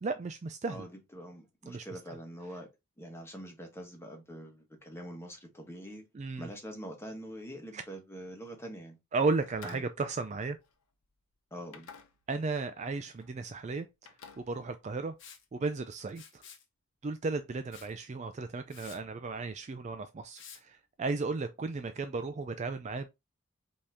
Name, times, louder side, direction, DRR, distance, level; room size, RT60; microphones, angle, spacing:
voice 1, 0.0-0.8 1.7-1.9 6.1-6.5 7.7-7.8 9.1-10.6 12.3-13.9 14.4-15.1 15.5-16.4 17.0-23.1, right 3 dB, 30° right, 0.3 m, -34 dB
voice 2, 0.7-2.7 3.0-6.0 6.4-9.0 9.6-9.8 11.5-11.9, equal, 10° left, 1.2 m, -44 dB
sound 1, 9.5-11.2 11.7-12.6 12.9-13.3 13.6-15.2, left 5 dB, 80° left, 0.8 m, -54 dB
Liquid, 15.2-15.4 16.1-16.7 17.7-17.9 18.3-18.4 18.7-19.0 20.4-20.6, left 7 dB, 55° left, 1.0 m, -51 dB
5.3 x 2.9 x 3.4 m
head